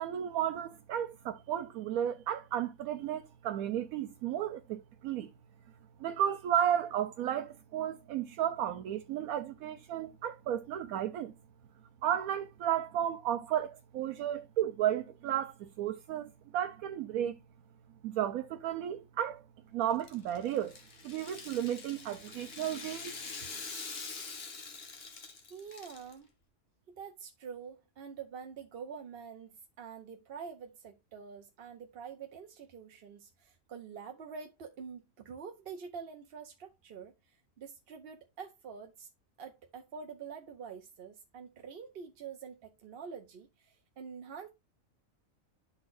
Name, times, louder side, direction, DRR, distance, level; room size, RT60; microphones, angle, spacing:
voice 1, 0.0-5.3 6.0-11.3 12.0-17.3 18.0-19.4 19.7-20.7 21.0-23.1, right 10 dB, 80° right, 1.0 m, -33 dB
Rattle (instrument), 19.9-26.1, left 4 dB, 45° left, 1.4 m, -45 dB
voice 2, 25.5-26.3 26.9-39.1 39.4-44.5, right 6 dB, 55° right, 0.8 m, -46 dB
12.0 x 4.1 x 2.5 m
omnidirectional pair, 1.5 m